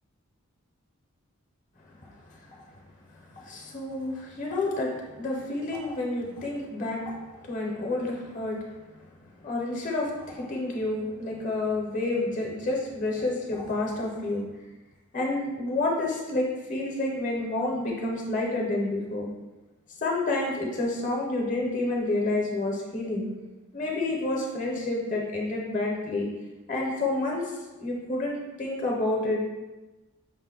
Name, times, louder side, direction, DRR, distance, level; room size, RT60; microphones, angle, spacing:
voice 1, 3.3-7.1 7.5-8.6 9.4-14.5 15.1-19.3 20.0-23.3 23.7-26.3 26.7-27.5 27.8-29.4, left 2 dB, 35° left, -1 dB, 0.6 m, -29 dB
5.2 x 2.1 x 3.7 m, 1.1 s
head